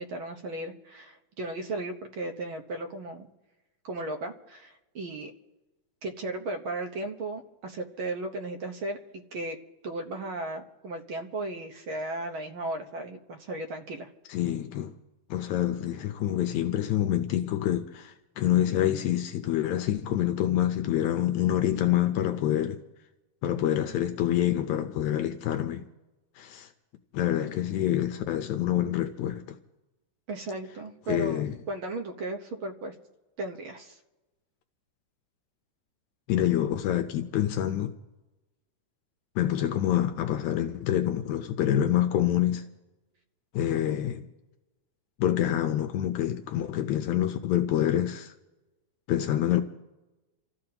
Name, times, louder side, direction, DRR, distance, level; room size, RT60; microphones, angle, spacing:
voice 1, 0.0-3.3 3.8-5.3 6.0-9.6 9.8-14.1 30.3-32.9 33.4-34.0, right 2 dB, 55° right, 1.5 m, -35 dB
voice 2, 14.3-14.9 15.3-22.8 23.4-25.9 26.4-26.7 27.1-29.6 31.1-31.6 36.3-37.9 39.4-42.6 43.5-44.3 45.2-48.3 49.1-49.6, left 11 dB, 80° left, 2.1 m, -26 dB
30.0 x 14.5 x 2.9 m
omnidirectional pair, 3.4 m